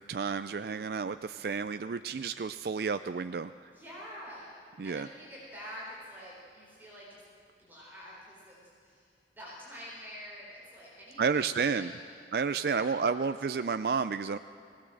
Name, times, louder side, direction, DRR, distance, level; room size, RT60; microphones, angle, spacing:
voice 1, 0.0-3.5 4.8-5.1 11.2-11.9 12.3-14.4, right 5 dB, 60° right, 10 dB, 0.4 m, -31 dB
voice 2, 3.7-4.6 4.8-7.2 7.6-9.0 9.4-12.2 12.7-12.9 13.2-13.3, equal, 10° right, -6 dB, 4.3 m, -47 dB
21.0 x 17.5 x 7.7 m, 2.4 s
head